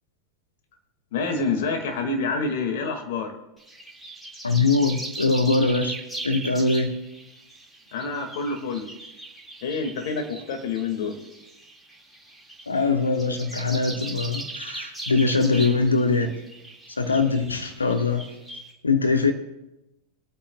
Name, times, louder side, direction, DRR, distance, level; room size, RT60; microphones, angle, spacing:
voice 1, 1.1-3.3 7.9-8.9 9.6-11.2, left 4 dB, 50° left, 4 dB, 1.8 m, -27 dB
sound 1, 3.6-18.7, right 2 dB, 5° left, 1.9 m, -39 dB
voice 2, 4.4-5.9 6.2-6.9 12.7-16.3 17.0-18.2 18.8-19.3, left 3 dB, 75° left, 5 dB, 1.2 m, -22 dB
25.0 x 8.9 x 2.2 m, 0.95 s
figure-of-eight pair, 90°, 0 cm